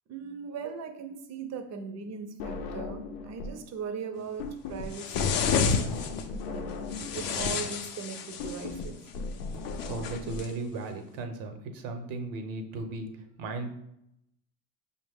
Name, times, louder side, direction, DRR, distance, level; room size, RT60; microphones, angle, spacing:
voice 1, 0.1-6.1 6.3-6.8 7.1-9.0, right 5 dB, 35° right, 6 dB, 0.6 m, -39 dB
sound 1, 2.4-3.7 3.9-10.4, left 3 dB, 85° left, 0.6 m, -37 dB
sound 2, 4.9-6.2 6.9-8.7 9.8-10.5, left 6 dB, 45° left, 0.5 m, -29 dB
voice 2, 9.8-13.1 13.4-13.7, right 3 dB, 70° right, 6 dB, 0.8 m, -36 dB
5.4 x 2.2 x 3.4 m, 0.79 s
hypercardioid pair, 85°, 48 cm